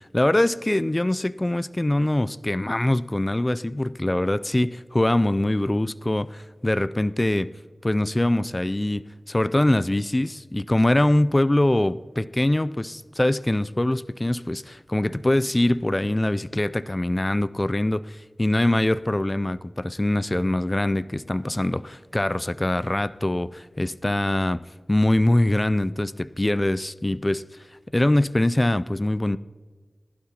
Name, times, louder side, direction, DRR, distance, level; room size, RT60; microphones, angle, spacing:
voice 1, 0.0-7.5 7.8-24.6 24.9-27.4 27.9-29.4, left 1 dB, 25° left, 15 dB, 0.3 m, -23 dB
19.5 x 11.5 x 2.8 m, 1.5 s
wide cardioid pair, 60°, 0 cm